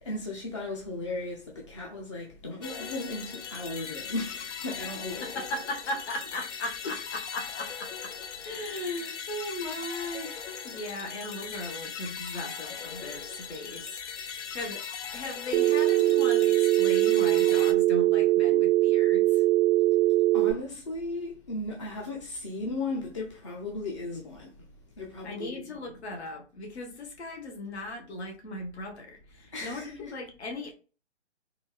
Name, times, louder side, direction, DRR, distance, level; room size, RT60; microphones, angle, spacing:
voice 1, 0.0-5.4 6.8-7.0 19.9-20.0 20.3-24.6 25.0-26.0 29.5-30.2, left 2 dB, 30° left, 0.4 m, -36 dB
sound 1, 2.6-17.7, left 7 dB, 80° left, 0.6 m, -39 dB
voice 2, 5.2-8.1 8.4-14.8 15.1-19.4 25.2-30.7, left 2 dB, 65° left, 1.1 m, -38 dB
Telephone, 15.5-20.5, right 16 dB, 60° right, 0.5 m, -22 dB
3.8 x 2.4 x 2.2 m
hypercardioid pair, 145°, 35 cm